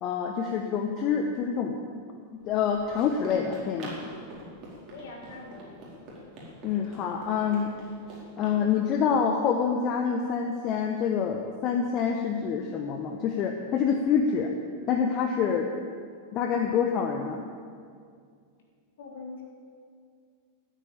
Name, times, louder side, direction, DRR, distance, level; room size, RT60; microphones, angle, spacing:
voice 1, 0.0-2.0 2.4-3.9 6.6-7.7 8.4-14.5 14.9-15.7 16.3-17.4, left 7 dB, 35° left, 3 dB, 1.0 m, -26 dB
Run, 2.4-8.6, right 1 dB, 35° right, 4.4 m, -45 dB
voice 2, 4.9-5.9 19.0-19.4, left 3 dB, 60° left, 0 dB, 3.3 m, -43 dB
13.5 x 9.3 x 8.8 m, 2.2 s
figure-of-eight pair, 90°, 0 cm